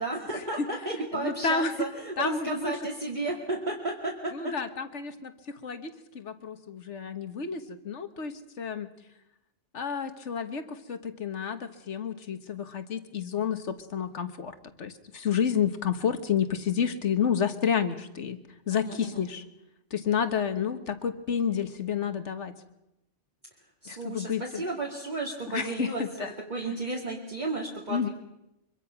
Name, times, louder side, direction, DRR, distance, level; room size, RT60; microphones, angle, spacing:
voice 1, 0.0-4.5 18.7-19.2 23.8-28.1, right 2 dB, 35° right, -3 dB, 2.5 m, -33 dB
voice 2, 1.1-1.9 2.2-2.7 4.3-8.9 9.7-18.4 18.7-19.4 19.9-22.5 23.9-24.6 25.5-26.3 27.9-28.1, left 7 dB, 70° left, 10 dB, 1.6 m, -30 dB
24.0 x 23.5 x 5.9 m, 0.87 s
omnidirectional pair, 1.3 m